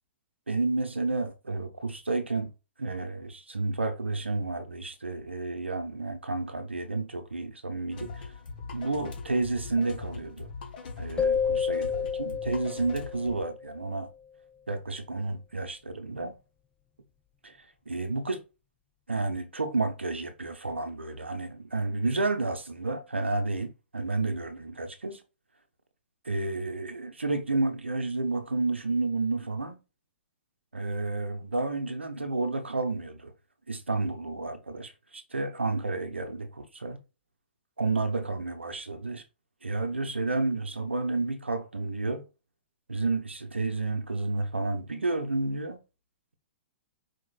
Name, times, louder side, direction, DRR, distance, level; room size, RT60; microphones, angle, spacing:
voice 1, 0.5-2.5 2.8-8.2 8.7-10.5 11.0-14.1 14.7-16.3 17.4-17.5 17.9-18.4 19.1-25.2 26.2-29.8 30.7-33.3 33.7-37.0 37.8-39.2 39.6-42.2 42.9-45.8, right 3 dB, 85° right, 0.7 m, -31 dB
sound 1, 7.9-13.4, left 4 dB, 55° left, 1.1 m, -41 dB
sound 2, 11.2-13.8, left 6 dB, 15° left, 0.3 m, -30 dB
4.6 x 3.1 x 2.4 m
figure-of-eight pair, 115°, 6 cm